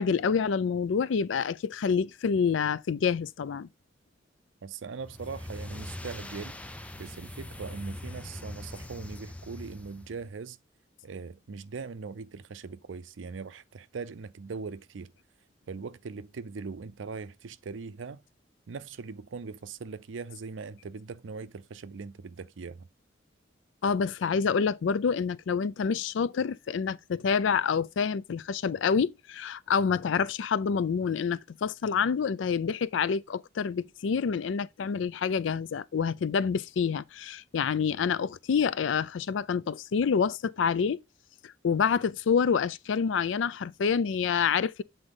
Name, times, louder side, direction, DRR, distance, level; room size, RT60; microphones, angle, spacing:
voice 1, 0.0-3.7 23.8-41.0 41.4-44.8, left 6 dB, 75° left, 0.4 m, -27 dB
voice 2, 4.6-6.6 7.0-10.6 11.0-15.1 15.7-18.2 18.7-22.9, right 4 dB, 75° right, 0.5 m, -40 dB
sound 1, 5.0-10.3, left 1 dB, 5° left, 0.5 m, -42 dB
8.0 x 3.8 x 3.7 m
head